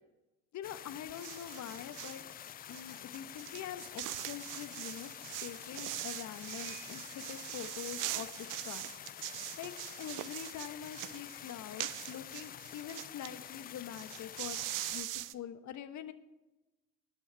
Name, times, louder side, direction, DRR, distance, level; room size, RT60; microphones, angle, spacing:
voice 1, 0.5-2.2 2.7-5.1 5.4-9.3 9.6-14.6 14.9-15.1 15.3-16.1, left 10 dB, 40° left, 10 dB, 1.3 m, -45 dB
sound 1, 0.6-15.0, left 11 dB, 25° left, 0.4 m, -48 dB
sound 2, 1.2-2.2 2.7-13.3 13.6-13.7 13.9-15.3, right 17 dB, 45° right, 0.7 m, -42 dB
sound 3, 4.5-11.9, left 7 dB, 75° left, 3.3 m, -59 dB
20.0 x 10.5 x 3.5 m, 1.0 s
hypercardioid pair, 70°, 43 cm